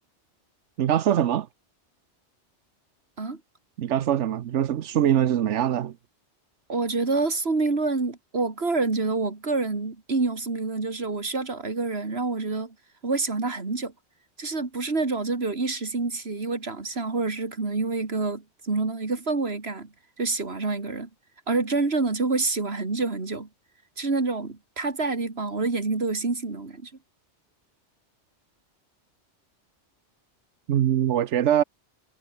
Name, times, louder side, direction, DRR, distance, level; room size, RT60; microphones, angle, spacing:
voice 1, 0.8-1.5 3.8-5.9 30.7-31.6, right 10 dB, 90° right, 1.1 m, -23 dB
voice 2, 6.7-12.7 13.0-13.9 14.4-19.9 20.2-21.1 21.5-23.5 24.0-26.9, right 3 dB, 60° right, 2.9 m, -27 dB
omnidirectional pair, 1.2 m